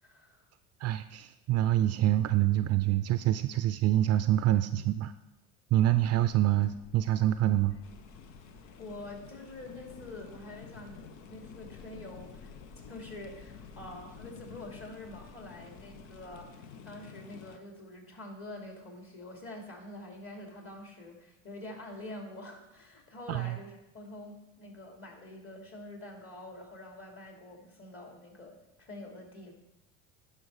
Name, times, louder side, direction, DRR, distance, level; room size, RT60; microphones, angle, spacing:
voice 1, 0.0-0.4 6.6-6.7 8.8-11.0 11.3-12.5 12.9-29.5, left 1 dB, 35° left, 1 dB, 2.8 m, -46 dB
voice 2, 0.8-5.1 5.7-7.7 23.3-23.5, right 13 dB, 40° right, 12 dB, 0.4 m, -26 dB
sound 1, 5.9-16.5, left 4 dB, 50° left, 1.1 m, -54 dB
sound 2, 7.8-17.6, left 6 dB, 75° left, 0.8 m, -51 dB
11.0 x 5.4 x 4.8 m, 0.97 s
hypercardioid pair, 75°, 38 cm